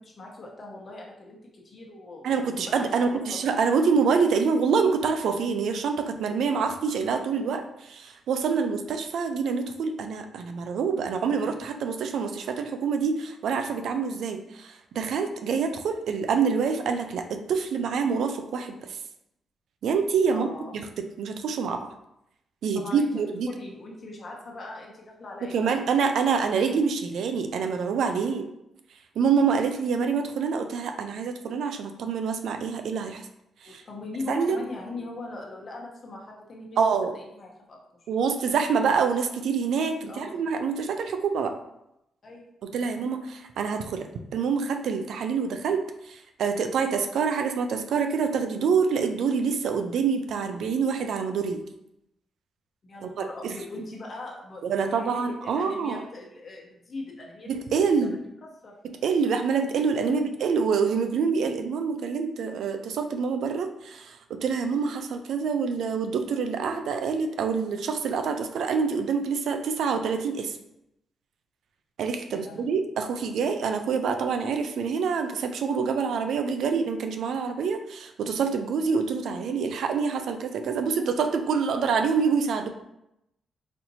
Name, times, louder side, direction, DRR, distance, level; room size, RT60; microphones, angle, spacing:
voice 1, 0.0-3.5 20.3-20.7 22.7-23.1 23.5-25.9 28.1-28.4 33.6-36.8 37.1-37.8 40.1-40.4 42.2-42.5 52.8-58.2 58.6-58.7 60.0-60.3 72.3-72.8, left 2 dB, 45° left, -1 dB, 0.9 m, -40 dB
voice 2, 2.2-19.0 19.8-20.5 21.2-21.9 22.6-23.5 25.4-28.5 29.2-33.3 33.6-33.8 34.3-34.6 36.8-37.1 38.1-41.6 42.7-51.6 53.0-53.6 54.6-56.0 57.5-58.2 58.8-70.6 72.0-82.7, right 5 dB, 80° right, 6 dB, 0.3 m, -26 dB
4.2 x 2.8 x 2.7 m, 0.82 s
cardioid pair, 100°, 0 cm